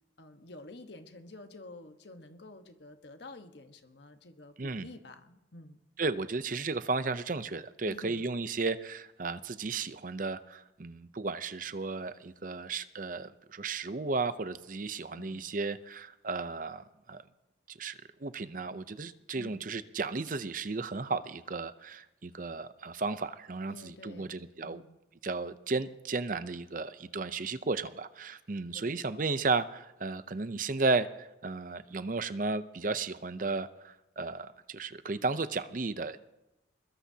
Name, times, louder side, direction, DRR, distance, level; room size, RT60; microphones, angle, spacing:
voice 1, 0.2-5.8 7.9-8.2 15.1-15.5 19.3-19.6 23.7-25.0 28.7-29.1, left 2 dB, 65° left, 6 dB, 1.3 m, -50 dB
voice 2, 6.0-17.2 17.7-24.8 25.2-36.2, right 3 dB, 45° right, 13 dB, 0.6 m, -34 dB
22.0 x 21.5 x 2.8 m, 0.96 s
head